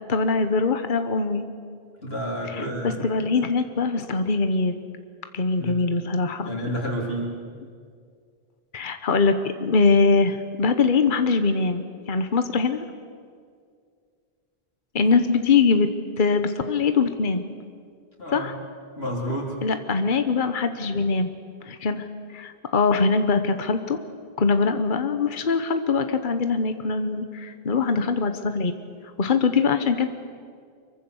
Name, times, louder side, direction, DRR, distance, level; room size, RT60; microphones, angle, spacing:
voice 1, 0.0-1.4 2.4-4.8 5.3-6.5 8.7-9.3 9.6-12.8 14.9-15.9 16.2-17.4 18.3-18.5 19.6-21.3 21.6-22.1 22.3-24.0 24.4-28.7 29.2-30.1, left 4 dB, 55° left, 8 dB, 1.2 m, -22 dB
voice 2, 2.0-3.2 5.6-5.8 6.4-7.3 18.2-18.5 19.0-19.5, equal, 70° left, -3 dB, 4.4 m, -30 dB
25.0 x 23.0 x 7.2 m, 2.1 s
omnidirectional pair, 1.1 m